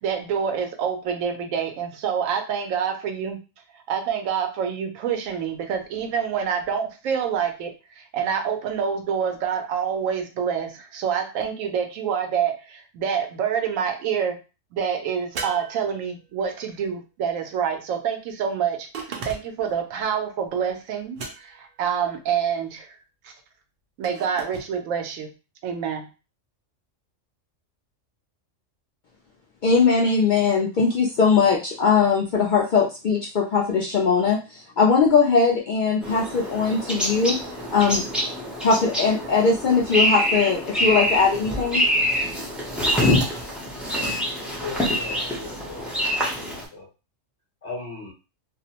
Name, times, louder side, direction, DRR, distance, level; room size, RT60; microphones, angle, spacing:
voice 1, 0.0-3.4 3.7-14.4 14.7-18.9 19.2-22.9 23.2-23.3 24.0-25.3 25.6-26.1, right 7 dB, 90° right, 5 dB, 1.0 m, -27 dB
sound 1, 15.4-16.5 18.9-19.7 21.2-21.8 24.0-24.7, right 4 dB, 60° right, 0.6 m, -36 dB
voice 2, 29.6-37.4 37.7-38.1 38.6-41.8, left 5 dB, 70° left, -2 dB, 0.4 m, -20 dB
sound 2, 36.0-46.6, equal, ahead, 0.4 m, -25 dB
voice 3, 44.6-45.8 46.4-46.9 47.6-48.1, left 3 dB, 40° left, -8 dB, 0.9 m, -37 dB
2.5 x 2.0 x 2.8 m, 0.31 s
omnidirectional pair, 1.3 m